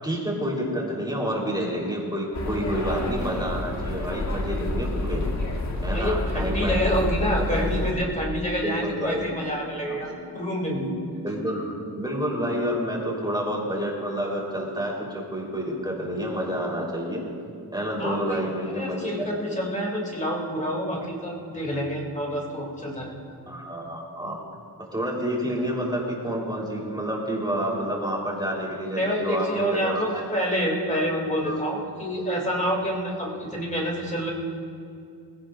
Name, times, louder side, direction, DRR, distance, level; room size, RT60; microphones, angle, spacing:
voice 1, 0.0-5.2 5.8-6.8 7.2-8.0 8.6-9.3 9.9-10.2 11.2-17.2 17.7-19.6 23.5-24.4 24.9-30.3 31.4-31.6, equal, 10° right, -3 dB, 3.7 m, -29 dB
sound 1, 2.3-7.9, left 2 dB, 45° left, 1.3 m, -28 dB
voice 2, 5.9-10.1 10.3-11.0 18.0-18.4 18.7-23.1 29.0-34.3, equal, 20° left, -1 dB, 2.7 m, -27 dB
20.5 x 16.5 x 2.5 m, 2.5 s
wide cardioid pair, 100°, 41 cm